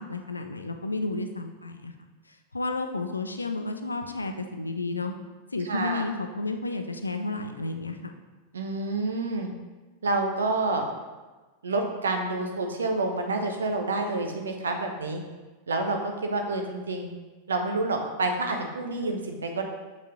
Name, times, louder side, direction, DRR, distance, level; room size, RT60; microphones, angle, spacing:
voice 1, 0.0-1.9 2.3-5.1 5.5-8.1, left 3 dB, 80° left, 6 dB, 0.6 m, -32 dB
voice 2, 5.6-6.1 8.5-9.5 10.0-10.9 11.6-15.2 15.7-17.1 17.5-19.6, right 2 dB, 70° right, 3 dB, 1.0 m, -28 dB
7.1 x 5.5 x 3.8 m, 1.2 s
figure-of-eight pair, 90°, 0 cm